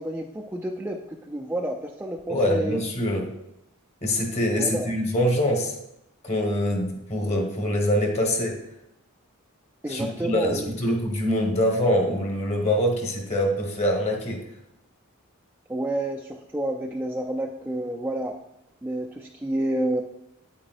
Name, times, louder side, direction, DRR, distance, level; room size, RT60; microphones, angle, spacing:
voice 1, 0.0-2.8 4.6-4.9 9.8-10.8 15.7-18.4 18.8-20.0, right 1 dB, 10° right, 0 dB, 0.3 m, -29 dB
voice 2, 2.3-3.3 4.0-5.7 6.2-8.6 9.9-14.4, equal, 30° left, 2 dB, 1.2 m, -24 dB
8.6 x 8.4 x 2.4 m, 0.84 s
head